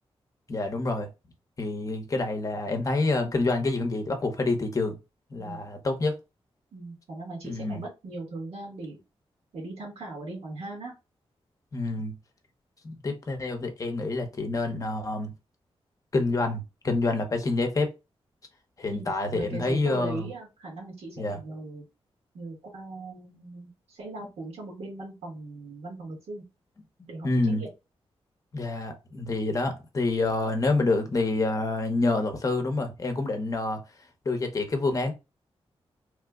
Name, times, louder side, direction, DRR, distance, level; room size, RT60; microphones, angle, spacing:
voice 1, 0.5-1.1 1.6-5.0 5.3-6.2 7.4-7.8 11.7-12.1 12.8-15.3 16.1-17.9 18.8-20.3 21.2-21.4 27.2-27.6 28.5-33.8 34.3-35.1, left 2 dB, 35° left, 0.7 m, -27 dB
voice 2, 6.7-9.0 9.5-10.9 18.9-21.8 22.3-26.4 27.1-27.7, right 2 dB, 85° right, 1.5 m, -39 dB
3.1 x 2.1 x 3.5 m
wide cardioid pair, 140°, 10 cm